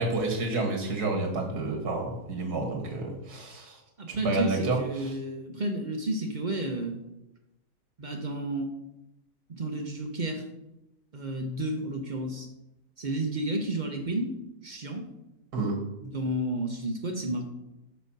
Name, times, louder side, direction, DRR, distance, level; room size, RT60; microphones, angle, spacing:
voice 1, 0.0-3.8 4.1-5.1 15.5-15.8, right 2 dB, 85° right, 2 dB, 2.2 m, -29 dB
voice 2, 4.0-7.0 8.0-8.7 9.5-10.4 11.1-12.5 13.0-14.3 14.6-15.0 16.0-17.5, right 1 dB, 40° right, 3 dB, 0.7 m, -31 dB
5.5 x 4.9 x 6.4 m, 0.92 s
omnidirectional pair, 1.7 m